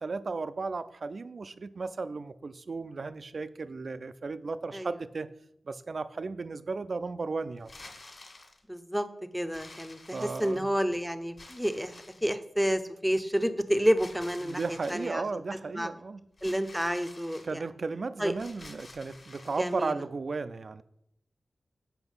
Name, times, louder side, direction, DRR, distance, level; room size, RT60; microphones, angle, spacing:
voice 1, 0.0-5.3 5.7-7.7 10.1-10.7 14.4-16.2 17.4-20.8, right 4 dB, 50° right, 14 dB, 0.4 m, -35 dB
sound 1, 7.6-8.6 9.5-10.8 11.4-12.3 14.0-15.1 16.4-17.5 18.3-19.9, left 2 dB, 40° left, 1.7 m, -50 dB
voice 2, 8.7-9.1 9.3-12.0 12.2-14.6 14.9-15.2 15.7-15.9 16.4-17.6 18.2-18.3 19.6-19.9, equal, ahead, 10 dB, 0.6 m, -29 dB
8.1 x 5.6 x 5.4 m, 0.77 s
wide cardioid pair, 125°, 0 cm